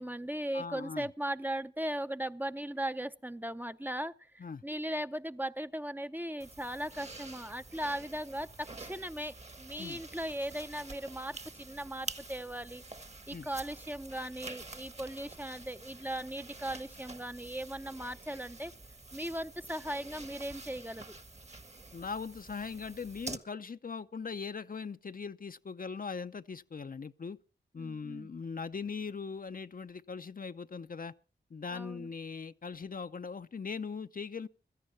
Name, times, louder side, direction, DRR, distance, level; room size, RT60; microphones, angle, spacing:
voice 1, 0.0-12.8 13.3-18.7 19.1-21.2 27.8-28.3 31.7-32.1, right 1 dB, 10° right, 0.6 m, -38 dB
voice 2, 0.5-1.1 4.4-4.6 9.8-10.0 13.3-13.5 21.9-27.4 27.7-31.1 31.5-34.5, left 5 dB, 50° left, 0.6 m, -40 dB
sound 1, 6.4-23.4, right 3 dB, 35° right, 1.3 m, -48 dB
16.5 x 13.5 x 4.4 m
cardioid pair, 40°, 19 cm